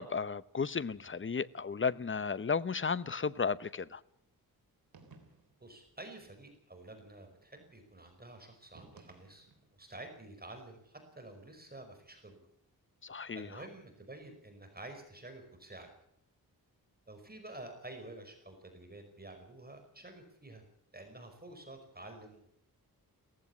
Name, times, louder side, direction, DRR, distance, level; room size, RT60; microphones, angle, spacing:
voice 1, 0.0-4.0 13.0-13.5, left 5 dB, 35° left, 0.8 m, -34 dB
sound 1, 4.9-5.7 8.7-9.8, right 3 dB, 70° right, 3.9 m, -58 dB
voice 2, 5.6-12.5 13.3-15.9 17.1-20.6 20.9-22.5, right 2 dB, 25° right, 5.1 m, -50 dB
17.5 x 15.5 x 9.6 m
cardioid pair, 70°, 36 cm